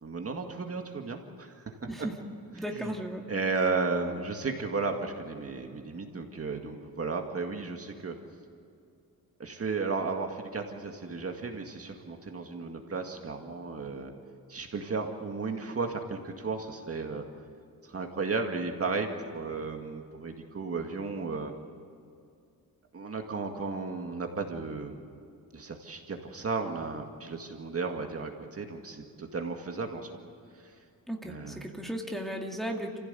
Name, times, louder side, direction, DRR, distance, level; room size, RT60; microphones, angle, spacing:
voice 1, 0.0-1.9 2.8-2.9 3.3-8.1 9.4-14.1 14.5-17.2 17.8-21.5 22.9-25.0 25.5-30.1 31.2-31.7, right 4 dB, 40° right, 3 dB, 2.0 m, -34 dB
voice 2, 2.5-3.2 31.1-33.0, equal, ahead, 0 dB, 2.1 m, -35 dB
29.0 x 16.0 x 8.2 m, 2.4 s
wide cardioid pair, 145°, 36 cm